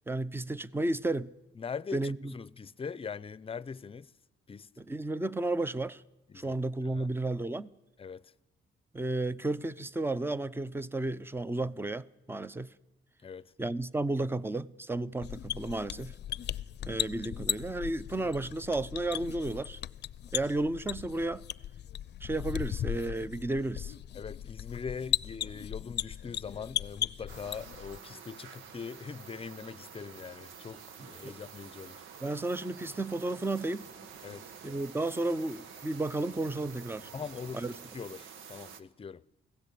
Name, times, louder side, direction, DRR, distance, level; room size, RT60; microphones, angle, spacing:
voice 1, 0.1-1.3 1.9-2.3 4.8-6.0 6.3-7.7 8.9-12.7 13.6-16.1 16.8-19.8 20.3-21.4 22.2-23.9 31.2-31.3 32.2-33.9 34.6-37.1 37.5-37.7, right 2 dB, 10° right, 0.8 m, -33 dB
voice 2, 1.6-4.1 4.5-4.7 6.3-7.1 8.0-8.3 13.2-13.5 24.1-32.0 34.2-34.5 37.1-37.6 37.9-39.2, left 6 dB, 30° left, 0.7 m, -42 dB
sound 1, 15.2-28.0, left 11 dB, 60° left, 0.6 m, -37 dB
sound 2, 19.7-21.3 21.6-21.7 22.2-22.3 22.6-22.7 23.0-38.1, right 2 dB, 65° right, 4.9 m, -63 dB
sound 3, 27.3-38.8, right 7 dB, 90° right, 1.5 m, -49 dB
24.5 x 16.5 x 8.5 m
cardioid pair, 90°, 20 cm